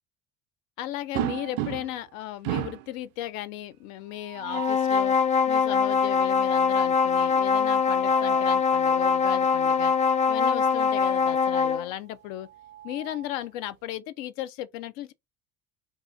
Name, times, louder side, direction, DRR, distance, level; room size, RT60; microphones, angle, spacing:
voice 1, 0.8-5.2 5.5-9.9 10.3-12.5 12.8-15.1, left 13 dB, 80° left, 0.6 m, -36 dB
sound 1, 1.1-2.1 2.4-2.9 4.2-4.9 7.6-8.6 10.0-10.2 10.6-10.7 12.2-13.5, right 14 dB, 55° right, 0.5 m, -35 dB
sound 2, 4.5-11.9, left 5 dB, 20° left, 0.3 m, -23 dB
2.9 x 2.3 x 3.8 m
supercardioid pair, 80°, 40 cm